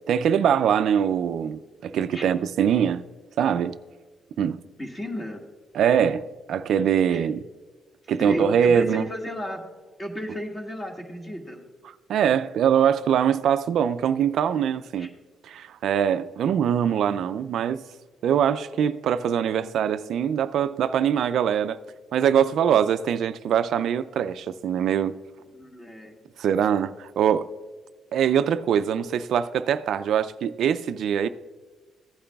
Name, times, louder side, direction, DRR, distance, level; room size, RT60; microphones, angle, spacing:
voice 1, 0.1-3.0 3.4-3.8 4.4-4.6 5.7-7.4 8.1-9.1 12.1-15.1 15.4-17.8 18.2-21.8 22.1-25.2 26.4-27.5 28.1-31.3, right 8 dB, 70° right, 0.3 m, -23 dB
voice 2, 4.8-5.4 7.1-7.3 8.2-9.6 10.0-11.6 15.0-15.1 25.5-26.2, equal, 20° left, 1.8 m, -34 dB
15.5 x 8.6 x 2.3 m
cardioid pair, 90°, 0 cm